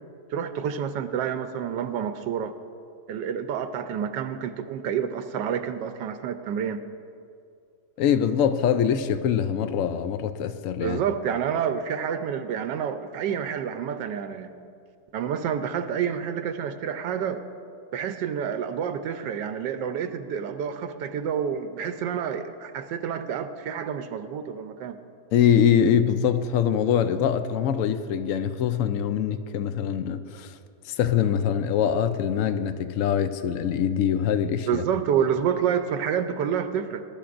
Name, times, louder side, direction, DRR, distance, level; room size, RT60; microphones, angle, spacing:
voice 1, 0.3-2.5 3.1-6.8 10.8-14.6 15.1-17.4 17.9-25.0 34.7-37.1, right 8 dB, 90° right, 1.3 m, -28 dB
voice 2, 8.0-11.0 25.3-30.5 30.8-34.8, left 8 dB, 75° left, 0.7 m, -23 dB
21.0 x 11.5 x 2.5 m
omnidirectional pair, 1.9 m